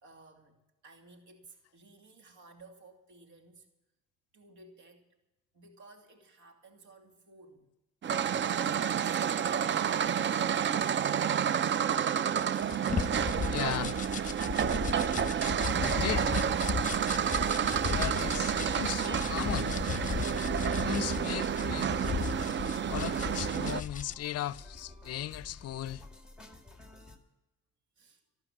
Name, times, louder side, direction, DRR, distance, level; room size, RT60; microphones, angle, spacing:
voice 1, 0.0-3.7 4.3-5.1 5.5-7.7 8.4-9.4 16.0-16.2 28.0-28.2, right 2 dB, 75° right, 2.8 m, -56 dB
sound 1, 8.0-23.8, right 8 dB, 40° right, 0.4 m, -30 dB
sound 2, 12.4-24.1, left 6 dB, 25° left, 1.1 m, -36 dB
voice 2, 13.5-14.0 15.8-16.4 17.9-19.8 20.8-22.0 22.9-26.0, left 12 dB, 55° left, 0.5 m, -37 dB
sound 3, 17.3-27.2, left 3 dB, 5° right, 2.1 m, -48 dB
13.0 x 13.0 x 7.3 m
cardioid pair, 90°, 30 cm